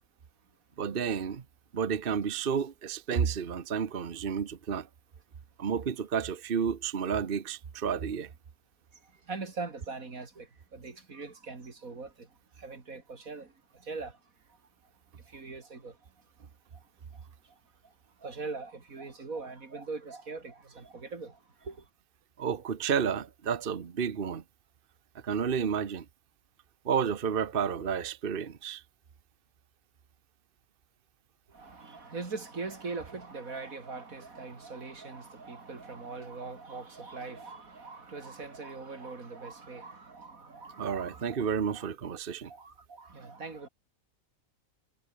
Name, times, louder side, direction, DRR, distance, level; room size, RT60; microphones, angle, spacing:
voice 1, 0.8-1.4 1.7-4.9 5.6-8.3 22.4-24.4 25.2-26.0 26.8-28.8 40.8-42.5, right 7 dB, 45° right, 1.2 m, -31 dB
voice 2, 9.3-10.5 10.7-12.3 12.6-13.5 13.8-14.1 15.3-15.9 18.2-21.4 21.6-21.8 31.5-41.4 41.7-41.8 42.5-43.7, right 4 dB, 85° right, 3.5 m, -41 dB
omnidirectional pair, 1.4 m